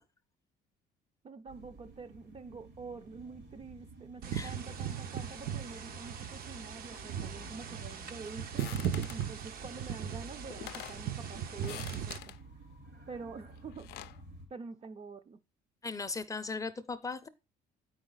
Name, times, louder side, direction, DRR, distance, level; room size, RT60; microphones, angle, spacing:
voice 1, 1.2-8.7 9.1-12.3 13.1-13.9 14.5-15.4, right 4 dB, 35° right, 0.6 m, -47 dB
sound 1, 1.5-14.4, right 2 dB, 85° right, 3.2 m, -51 dB
sound 2, 4.2-12.2, right 9 dB, 60° right, 0.8 m, -38 dB
sound 3, 8.6-9.3 10.2-10.3 10.5-11.0 11.6-12.4 13.6-14.2, left 15 dB, 75° left, 0.4 m, -46 dB
voice 2, 15.8-17.3, left 4 dB, 20° left, 0.6 m, -38 dB
8.7 x 4.8 x 3.9 m
cardioid pair, 110°, 17 cm